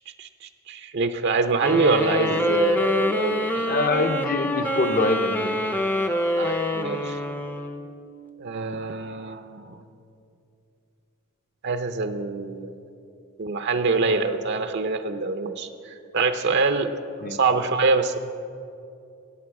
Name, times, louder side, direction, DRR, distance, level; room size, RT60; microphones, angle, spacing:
voice 1, 0.7-3.7 6.4-7.2 8.4-9.8 11.6-12.8 13.4-16.9 17.3-18.2, right 3 dB, 50° right, 8 dB, 0.6 m, -25 dB
sound 1, 1.6-8.0, left 1 dB, 10° left, 0.5 m, -26 dB
voice 2, 3.7-5.6 17.2-17.4, left 2 dB, 40° left, 8 dB, 0.7 m, -24 dB
17.5 x 9.1 x 4.7 m, 2.6 s
head